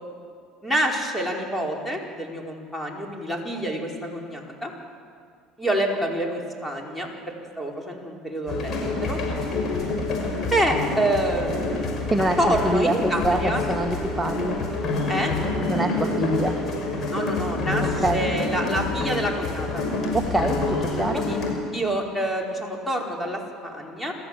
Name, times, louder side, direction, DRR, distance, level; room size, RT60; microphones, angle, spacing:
voice 1, 0.6-4.7 5.6-9.2 10.5-12.0 12.4-13.6 15.1-15.3 17.1-19.8 21.1-21.4 21.7-24.1, right 1 dB, 5° left, 0 dB, 4.7 m, -27 dB
sound 1, 8.5-21.5, left 3 dB, 45° left, 5.9 m, -27 dB
voice 2, 12.6-14.6 15.7-16.6 18.0-18.2 20.1-21.2, right 2 dB, 10° right, 3 dB, 1.6 m, -25 dB
28.0 x 14.0 x 7.6 m, 2.1 s
hypercardioid pair, 75°, 0 cm